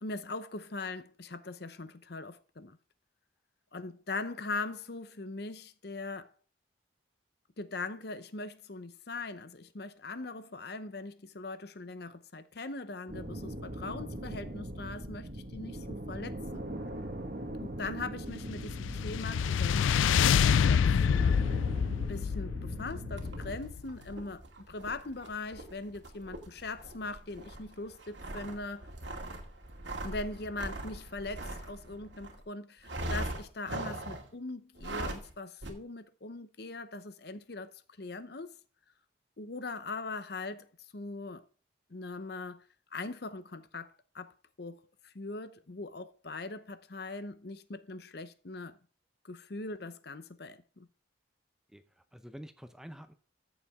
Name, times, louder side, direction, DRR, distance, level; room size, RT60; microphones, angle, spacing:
voice 1, 0.0-2.8 3.7-6.3 7.6-16.7 17.6-20.2 20.6-21.4 22.1-28.9 30.0-38.5 39.4-40.7 40.9-41.4 41.9-42.6 42.9-48.8 49.2-50.9, left 3 dB, 55° left, 0.8 m, -41 dB
sound 1, 13.1-23.6, right 1 dB, 50° right, 1.6 m, -41 dB
sound 2, 18.4-23.9, left 7 dB, 85° left, 0.3 m, -27 dB
sound 3, 23.2-32.4 32.8-34.3 34.7-35.3 35.6-35.7, right 1 dB, 70° right, 2.2 m, -41 dB
voice 2, 51.7-53.1, equal, 5° right, 0.7 m, -48 dB
14.0 x 7.2 x 3.6 m
head